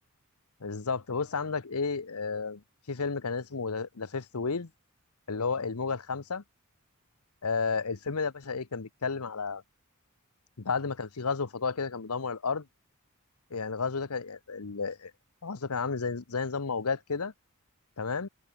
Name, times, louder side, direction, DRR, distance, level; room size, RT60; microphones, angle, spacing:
voice 1, 0.6-2.6 2.9-4.7 5.3-6.4 7.4-9.6 10.6-12.7 13.5-15.1 15.4-17.3 18.0-18.3, left 4 dB, 90° left, 1.0 m, -32 dB
open air
head